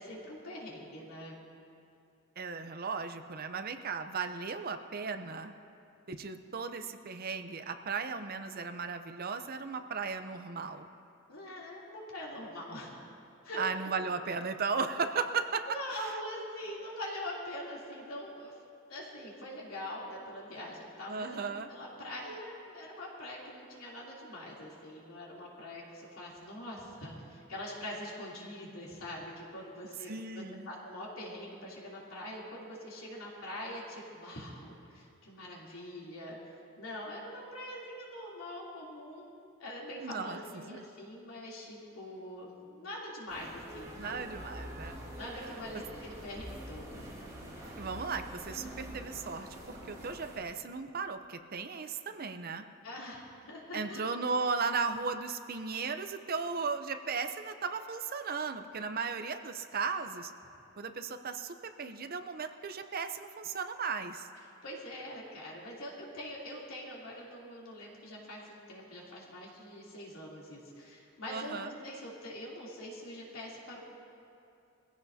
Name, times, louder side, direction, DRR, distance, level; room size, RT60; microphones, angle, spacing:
voice 1, 0.0-1.4 11.3-13.0 13.4-13.7 15.6-18.6 18.9-21.4 21.7-36.4 36.8-39.3 39.6-44.3 45.1-47.1 52.8-54.0 64.6-73.8, left 1 dB, 90° left, -4 dB, 3.1 m, -43 dB
voice 2, 2.4-5.5 6.1-10.9 13.6-15.7 21.1-21.7 30.1-30.7 40.0-40.8 43.9-45.0 47.8-52.6 53.7-60.3 60.8-64.3 71.3-71.7, right 5 dB, 45° right, 8 dB, 0.6 m, -36 dB
sound 1, 43.3-50.4, equal, 15° right, 3.4 m, -45 dB
21.0 x 15.5 x 2.8 m, 2.7 s
head